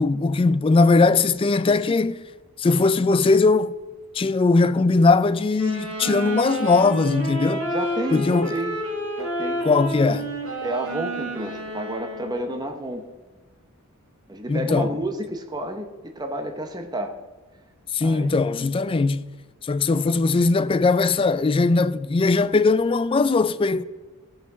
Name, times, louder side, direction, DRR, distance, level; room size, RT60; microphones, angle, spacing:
voice 1, 0.0-2.3 2.6-3.7 4.1-7.7 8.1-8.5 9.6-10.3 14.5-14.9 17.9-19.3 19.6-23.8, left 3 dB, 25° left, 0.3 m, -20 dB
sound 1, 5.6-12.6, right 1 dB, 85° right, 3.1 m, -30 dB
voice 2, 7.7-8.8 9.2-9.6 10.6-13.0 14.3-15.9 16.1-17.2 18.0-18.3, right 1 dB, 20° right, 0.9 m, -30 dB
13.5 x 5.7 x 6.1 m
head